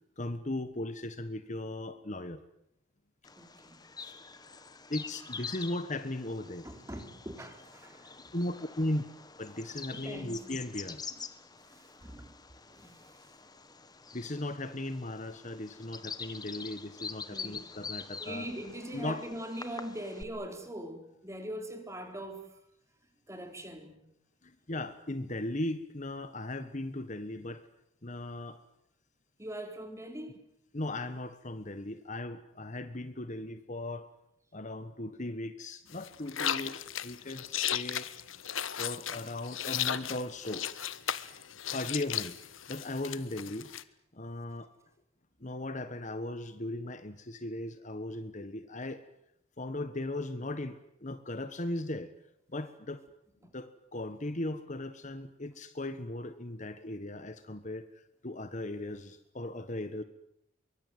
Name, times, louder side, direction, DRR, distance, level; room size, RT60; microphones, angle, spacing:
voice 1, 0.2-2.4 4.0-4.1 4.9-6.7 8.3-9.0 9.4-11.0 14.1-18.5 18.9-19.2 24.4-27.7 28.0-28.6 30.7-34.1 34.5-38.1 38.8-40.7 41.7-42.3 42.7-43.7 44.1-44.7 45.4-49.1 49.6-52.1 52.5-53.0 53.5-60.0, left 1 dB, 35° left, 1.4 m, -37 dB
Bird vocalization bird call bird song, 3.2-20.2, left 5 dB, 20° left, 1.6 m, -46 dB
voice 2, 3.3-3.8 6.6-8.1 8.8-8.9 9.9-10.4 11.7-12.4 12.7-13.0 17.3-17.6 18.2-22.5 23.3-24.0 29.4-30.5 53.4-53.5, right 1 dB, 15° right, 4.1 m, -42 dB
sound 1, 35.9-43.8, left 10 dB, 80° left, 1.3 m, -36 dB
24.0 x 23.5 x 9.3 m
head